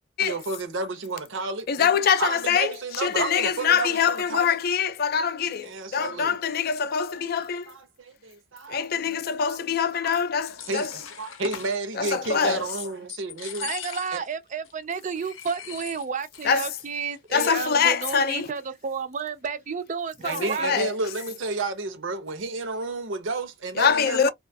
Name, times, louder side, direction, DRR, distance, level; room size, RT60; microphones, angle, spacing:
voice 1, 0.2-4.6 5.6-6.4 7.4-9.6 9.9-10.2 10.7-13.7 14.1-14.2 20.2-24.3, right 3 dB, 75° right, 0.7 m, -32 dB
voice 2, 1.7-7.7 8.7-10.9 12.0-12.6 16.4-16.7 17.3-18.5 20.2-20.9 23.8-24.3, left 7 dB, 50° left, 0.4 m, -24 dB
sound 1, 10.2-11.8 12.3-12.8 13.1-14.3 14.6-14.7 15.1-16.5 16.8-16.9 17.1-17.6, left 8 dB, 85° left, 0.6 m, -40 dB
voice 3, 13.6-20.8, right 5 dB, 40° right, 0.4 m, -31 dB
2.5 x 2.3 x 2.6 m
head